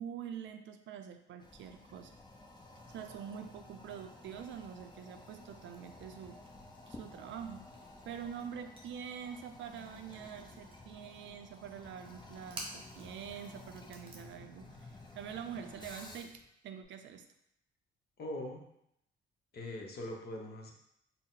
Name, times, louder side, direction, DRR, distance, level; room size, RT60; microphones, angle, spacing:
voice 1, 0.0-2.1 2.9-6.4 6.9-7.7 8.1-17.2, right 8 dB, 70° right, 7 dB, 0.4 m, -45 dB
Toilet flush, 1.4-16.5, left 2 dB, 20° left, 0.6 m, -53 dB
sound 1, 5.7-6.5 6.8-10.3 10.5-11.1 12.0-13.3 13.6-16.9, right 2 dB, 30° right, 0.8 m, -52 dB
voice 2, 18.2-18.7 19.5-20.7, left 1 dB, 55° left, 1 dB, 0.8 m, -41 dB
4.1 x 2.1 x 3.9 m, 0.76 s
cardioid pair, 90°, 20 cm